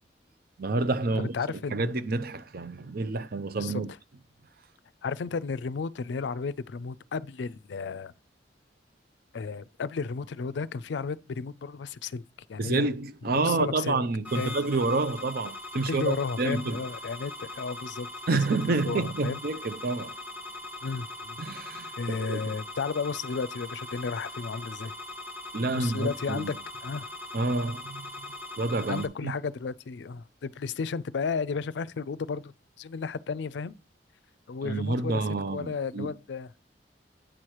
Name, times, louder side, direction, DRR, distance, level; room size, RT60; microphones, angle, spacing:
voice 1, 0.6-1.3 1.7-3.9 12.6-16.8 18.3-20.1 21.4-21.9 22.2-22.6 25.5-26.5 27.3-28.3 28.6-29.3 34.6-36.1, right 3 dB, 60° right, 0.6 m, -28 dB
voice 2, 1.2-1.9 3.6-3.8 5.0-8.1 9.3-12.2 12.5-12.9 13.3-14.0 14.4-14.6 15.7-18.1 18.3-19.4 20.8-21.4 22.0-24.9 25.8-26.6 26.8-27.1 28.9-32.5 32.8-33.7 34.5-36.6, left 5 dB, 75° left, 0.4 m, -33 dB
sound 1, 14.2-29.1, left 2 dB, 10° right, 1.0 m, -41 dB
8.9 x 3.0 x 6.4 m
head